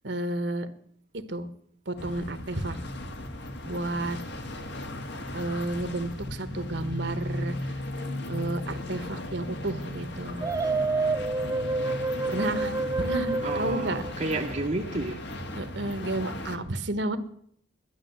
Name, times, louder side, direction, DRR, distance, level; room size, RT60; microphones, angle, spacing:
voice 1, 0.0-0.7 1.3-1.5 1.9-2.8 3.7-4.2 5.3-7.7 8.3-10.5 12.3-12.7 13.0-14.0 15.5-17.2, right 2 dB, 65° right, 1.2 m, -31 dB
sound 1, 2.0-16.6, left 1 dB, 60° left, 1.5 m, -36 dB
sound 2, 10.4-14.6, right 3 dB, 15° right, 0.5 m, -29 dB
voice 2, 13.4-15.2, right 2 dB, 40° right, 0.8 m, -31 dB
11.5 x 10.5 x 7.8 m
head